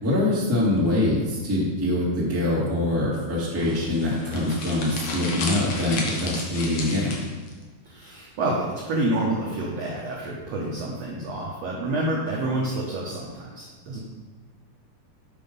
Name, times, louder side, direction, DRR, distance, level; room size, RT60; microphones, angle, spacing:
voice 1, 0.0-7.1, left 1 dB, 5° right, -6 dB, 1.1 m, -24 dB
sound 1, 3.5-7.5, left 3 dB, 70° left, 1.5 m, -33 dB
voice 2, 7.8-14.0, right 2 dB, 80° right, -3 dB, 1.5 m, -28 dB
7.6 x 5.6 x 5.3 m, 1.4 s
omnidirectional pair, 4.4 m